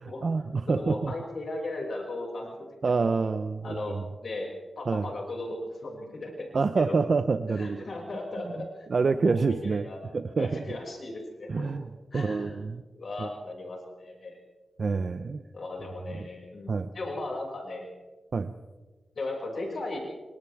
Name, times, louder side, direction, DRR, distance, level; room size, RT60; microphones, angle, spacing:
voice 1, 0.0-1.1 2.8-4.0 4.9-5.1 6.5-7.9 8.9-10.6 11.5-12.8 13.2-13.3 14.8-15.4 16.1-16.3 16.7-16.9 18.3-18.5, right 4 dB, 55° right, 10 dB, 0.8 m, -27 dB
voice 2, 0.7-2.5 3.6-3.9 4.2-4.5 4.8-6.5 6.8-7.0 7.5-8.9 9.2-10.0 10.4-11.7 12.1-12.6 12.9-14.4 15.5-17.9 19.1-20.0, left 2 dB, 60° left, -1 dB, 6.3 m, -37 dB
28.5 x 25.5 x 3.6 m, 1.3 s
wide cardioid pair, 90°, 0 cm